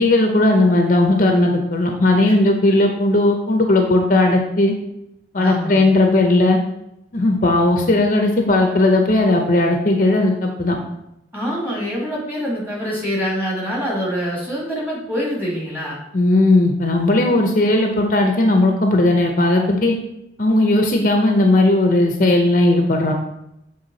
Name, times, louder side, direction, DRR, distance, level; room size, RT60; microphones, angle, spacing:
voice 1, 0.0-4.7 5.3-6.6 7.1-10.8 16.1-19.9 20.4-23.1, left 2 dB, 45° left, 2 dB, 0.7 m, -16 dB
voice 2, 5.4-5.8 11.3-16.0, equal, 10° right, -5 dB, 2.1 m, -25 dB
7.2 x 3.5 x 3.9 m, 0.83 s
head